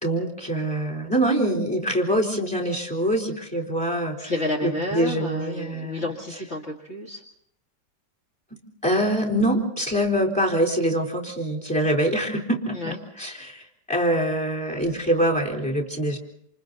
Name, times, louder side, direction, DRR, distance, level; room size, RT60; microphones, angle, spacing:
voice 1, 0.0-4.3 4.6-6.0 8.5-16.2, right 1 dB, 5° left, 2 dB, 3.7 m, -24 dB
voice 2, 4.2-7.2 12.7-13.0, left 1 dB, 35° left, -2 dB, 2.4 m, -30 dB
28.5 x 28.0 x 4.1 m, 0.73 s
omnidirectional pair, 2.1 m